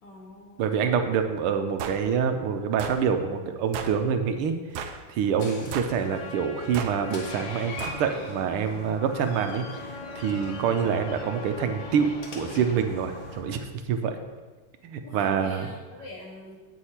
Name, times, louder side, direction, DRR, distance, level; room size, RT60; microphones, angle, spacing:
voice 1, 0.0-0.8 15.0-16.6, left 2 dB, 85° left, -5 dB, 3.1 m, -44 dB
voice 2, 0.6-4.6 5.1-9.6 10.2-14.2 14.8-15.7, right 7 dB, 90° right, 6 dB, 1.7 m, -26 dB
sound 1, 1.8-2.0 2.8-3.0 3.7-4.0 4.8-5.0 5.7-6.0 6.7-7.0 7.8-8.0, right 7 dB, 70° right, 1.3 m, -34 dB
Door, 4.7-13.4, left 3 dB, 65° left, 1.8 m, -42 dB
Trumpet, 6.0-13.6, left 2 dB, 30° left, 1.0 m, -44 dB
8.1 x 7.4 x 4.3 m, 1.3 s
omnidirectional pair, 2.4 m